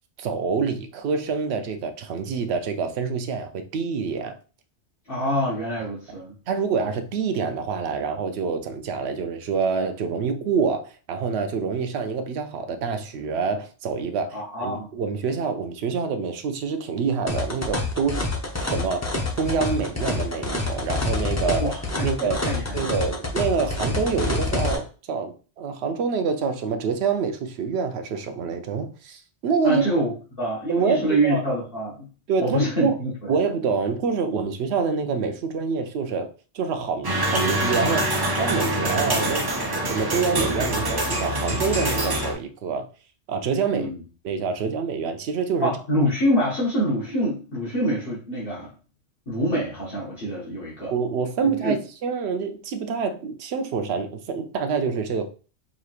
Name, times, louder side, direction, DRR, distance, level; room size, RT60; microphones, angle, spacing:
voice 1, 0.2-4.3 6.5-18.2 18.6-19.1 19.4-21.7 22.0-22.4 22.7-29.8 30.7-31.4 32.3-32.9 33.3-39.5 39.7-42.9 43.3-43.9 44.2-45.8 50.9-55.3, right 5 dB, 70° right, 0.8 m, -26 dB
voice 2, 5.1-6.4 14.3-14.9 21.6-23.0 29.6-32.1 32.4-33.1 43.7-44.0 45.6-48.7 49.3-50.9 51.6-51.7, equal, 50° left, 1.3 m, -26 dB
sound 1, 17.3-24.8, left 2 dB, 20° left, 0.5 m, -27 dB
sound 2, 37.0-42.3, right 1 dB, 30° right, 0.5 m, -25 dB
5.0 x 3.0 x 2.4 m
omnidirectional pair, 1.2 m